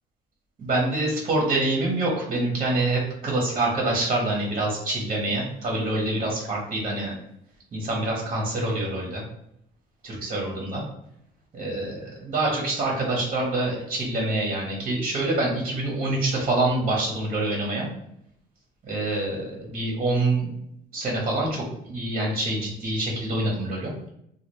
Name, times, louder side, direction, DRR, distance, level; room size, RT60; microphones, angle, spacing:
voice 1, 0.6-7.1 7.7-9.2 10.0-10.8 11.5-17.9 18.8-20.5 20.9-23.9, right 2 dB, 35° right, -2 dB, 1.0 m, -26 dB
3.2 x 2.3 x 3.0 m, 0.75 s
cardioid pair, 110°, 17 cm